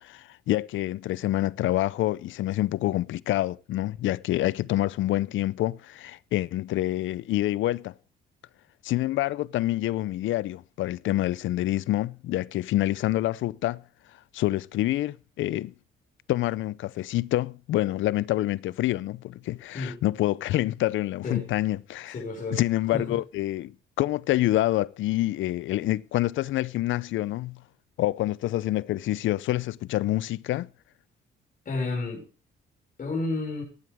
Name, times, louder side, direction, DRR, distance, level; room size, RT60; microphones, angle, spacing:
voice 1, 0.0-7.9 8.8-13.8 14.3-15.7 16.3-22.2 22.5-27.6 28.0-30.7, left 15 dB, 75° left, 0.5 m, -27 dB
voice 2, 22.1-22.6 22.9-23.2 31.7-32.2 33.0-33.6, left 3 dB, 45° left, 6.0 m, -31 dB
15.5 x 11.0 x 3.5 m
cardioid pair, 90°, 20 cm